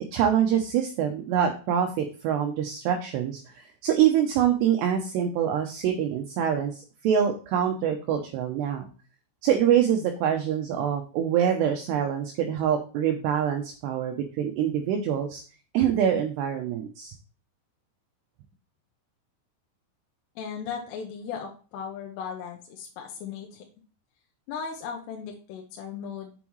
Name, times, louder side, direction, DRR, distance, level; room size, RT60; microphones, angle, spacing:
voice 1, 0.0-8.9 9.4-15.4 15.7-17.1, right 9 dB, 80° right, 4 dB, 2.6 m, -25 dB
voice 2, 20.4-23.7 24.5-26.3, left 6 dB, 75° left, 0 dB, 2.8 m, -37 dB
7.3 x 7.1 x 3.1 m, 0.38 s
omnidirectional pair, 5.4 m